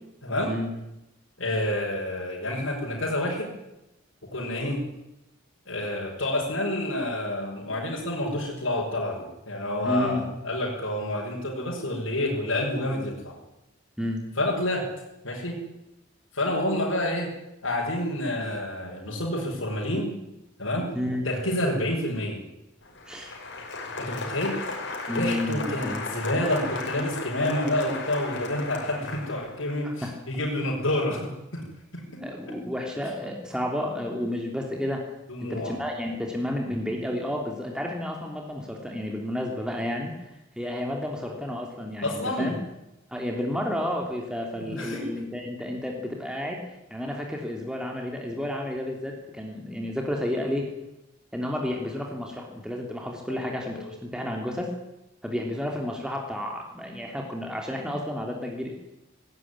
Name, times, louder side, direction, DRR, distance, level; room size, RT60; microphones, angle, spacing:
voice 1, 1.4-3.5 4.3-4.8 5.7-13.3 14.4-14.9 15.2-15.6 16.3-17.3 17.6-20.1 20.6-20.9 21.2-22.4 24.0-24.6 25.1-31.6 31.9-32.5 35.3-35.8 42.0-42.5 44.6-45.0 53.3-53.5 53.8-53.9, left 1 dB, 80° left, -4 dB, 6.2 m, -28 dB
voice 2, 9.8-10.2 14.0-14.2 20.9-21.3 23.0-23.4 25.1-26.0 29.8-30.1 32.2-35.0 35.4-42.6 43.1-46.6 46.9-50.7 51.3-54.7 55.2-58.7, left 1 dB, 5° right, 0 dB, 3.1 m, -31 dB
Applause, 22.8-29.7, left 3 dB, 65° left, 5.6 m, -35 dB
19.0 x 19.0 x 9.8 m, 0.91 s
head